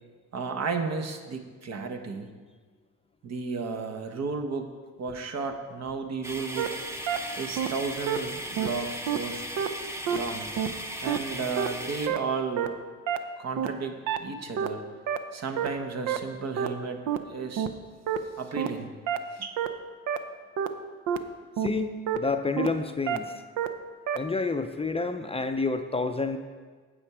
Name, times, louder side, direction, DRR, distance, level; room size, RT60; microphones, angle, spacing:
voice 1, 0.3-2.3 3.2-4.7 5.0-6.7 7.4-9.4 10.1-10.5 11.0-12.7 13.4-14.8 15.3-17.0 17.3-17.7 18.4-18.9 19.3-19.6, right 4 dB, 60° right, 6 dB, 1.1 m, -33 dB
sound 1, 6.2-12.1, equal, 10° right, 0.8 m, -37 dB
sound 2, 6.6-6.7 7.1-7.2 7.6-7.7 8.1-8.2 8.6-8.7 9.1-9.2 9.6-9.7 10.1-10.2 10.6-10.7 11.1-11.2 11.6-11.7 12.1-12.2 12.6-12.7 13.1-13.2 13.6-13.7 14.1-14.2 14.6-14.7 15.1-15.2 15.6-15.7 16.1-16.2 16.6-16.7 17.1-17.2 17.6-17.7 18.1-18.2 18.6-18.7 19.1-19.2 19.6-19.7 20.1-20.2 20.6-20.7 21.1-21.2 21.6-21.7 22.1-22.2 22.6-22.7 23.1-23.2 23.6-23.7 24.1-24.2, right 9 dB, 85° right, 0.7 m, -27 dB
voice 2, 21.6-23.3 24.1-26.4, left 3 dB, 20° left, 7 dB, 0.5 m, -29 dB
8.6 x 8.3 x 4.8 m, 1.5 s
cardioid pair, 90°, 30 cm